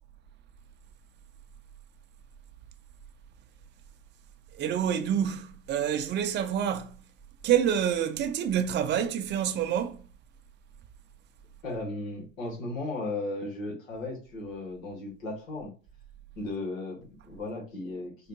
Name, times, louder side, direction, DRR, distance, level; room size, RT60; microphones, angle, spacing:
voice 1, 4.6-6.9 7.4-10.0, right 9 dB, 30° right, 0.5 m, -27 dB
voice 2, 11.6-15.7 16.4-18.3, left 2 dB, 80° left, 1.8 m, -36 dB
4.5 x 2.5 x 2.9 m
hypercardioid pair, 105°, 39 cm